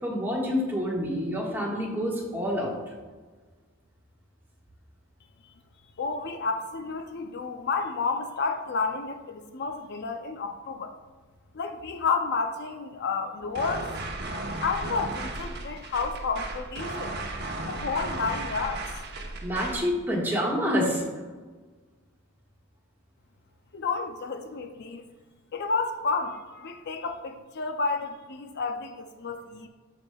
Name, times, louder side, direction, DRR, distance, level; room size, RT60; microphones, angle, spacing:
voice 1, 0.0-2.8 19.4-21.0, equal, 10° right, -4 dB, 1.5 m, -27 dB
voice 2, 6.0-11.0 11.5-13.9 14.6-17.2 17.6-19.0 23.7-25.0 25.5-29.7, left 4 dB, 55° left, 6 dB, 0.5 m, -31 dB
sound 1, 13.5-19.9, right 2 dB, 50° right, 0.9 m, -35 dB
14.0 x 4.9 x 2.3 m, 1.4 s
head